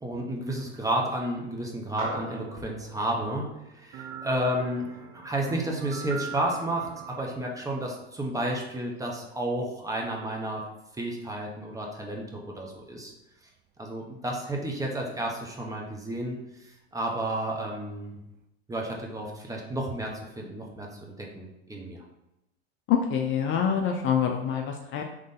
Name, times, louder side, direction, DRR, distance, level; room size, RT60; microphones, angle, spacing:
voice 1, 0.0-3.5 3.7-10.6 11.0-13.1 13.8-16.4 16.9-18.2 18.7-20.9 21.2-22.0, right 1 dB, 10° right, -1 dB, 0.9 m, -31 dB
sound 1, 2.0-6.6, right 1 dB, 85° right, 1.3 m, -43 dB
sound 2, 3.9-7.2 10.0-10.1, right 8 dB, 30° right, 0.4 m, -40 dB
voice 2, 22.9-25.0, left 8 dB, 40° left, 3 dB, 0.5 m, -26 dB
3.9 x 3.2 x 3.7 m, 0.90 s
hypercardioid pair, 90°, 33 cm